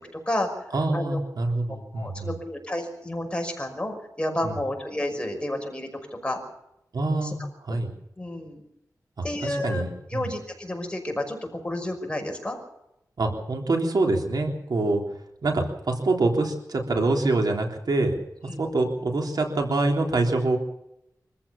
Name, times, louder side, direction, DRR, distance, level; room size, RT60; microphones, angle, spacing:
voice 1, 0.7-2.4 4.4-4.5 6.9-7.9 9.2-10.3 13.2-15.0 15.4-18.1 18.6-20.6, right 2 dB, 75° right, 2 dB, 3.5 m, -25 dB
voice 2, 1.9-5.9 6.2-6.4 7.2-7.3 7.7-7.8 8.2-8.6 9.2-9.8 10.1-12.6 18.5-18.6, left 1 dB, 15° left, 3 dB, 5.7 m, -30 dB
25.0 x 15.0 x 7.1 m, 0.83 s
wide cardioid pair, 80°, 7 cm